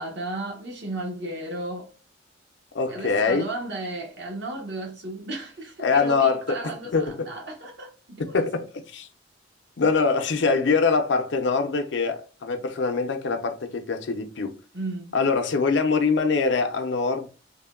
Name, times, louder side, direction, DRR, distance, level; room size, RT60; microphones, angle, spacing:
voice 1, 0.0-1.9 2.9-8.4 14.7-15.2, right 2 dB, 65° right, 1.0 m, -34 dB
voice 2, 2.7-3.5 5.8-7.3 8.2-9.1 9.8-14.6 15.1-17.3, left 4 dB, 70° left, 0.5 m, -24 dB
3.4 x 2.2 x 2.3 m
head